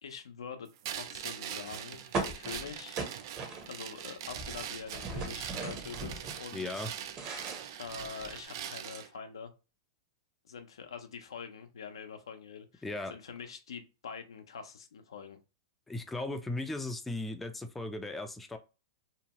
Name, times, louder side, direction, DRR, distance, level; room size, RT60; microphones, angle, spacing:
voice 1, 0.0-3.0 3.7-6.9 7.8-9.5 10.4-15.4, left 6 dB, 85° left, 7 dB, 0.6 m, -45 dB
sound 1, 0.8-9.1, right 10 dB, 60° right, 0.4 m, -42 dB
sound 2, 2.1-4.0 4.3-6.4 6.8-8.4, right 3 dB, 30° right, 0.9 m, -38 dB
voice 2, 6.5-6.9 12.8-13.1 15.9-18.6, left 2 dB, 5° left, 6 dB, 0.4 m, -37 dB
2.8 x 2.1 x 2.9 m, 0.30 s
hypercardioid pair, 120°, 3 cm